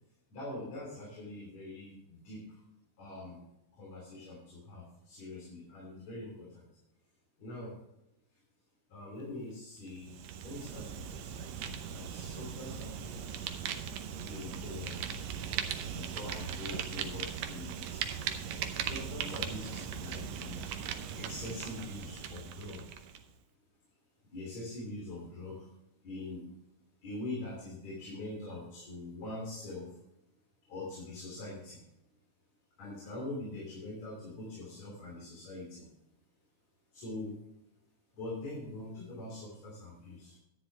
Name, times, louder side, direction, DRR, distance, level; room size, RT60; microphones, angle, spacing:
voice 1, 0.3-2.6 3.0-3.4 3.7-6.7 7.4-7.7 8.9-10.2 10.4-13.5 14.3-15.1 15.9-18.2 18.8-20.8 21.2-22.8 24.2-25.7 26.0-26.5 27.0-29.9 30.7-31.8 32.8-35.9 36.9-37.4 38.1-40.4, left 2 dB, 55° left, -4 dB, 4.2 m, -43 dB
Fire, 9.9-23.2, right 8 dB, 70° right, 1.8 m, -39 dB
11.5 x 10.5 x 3.3 m, 0.85 s
omnidirectional pair, 3.7 m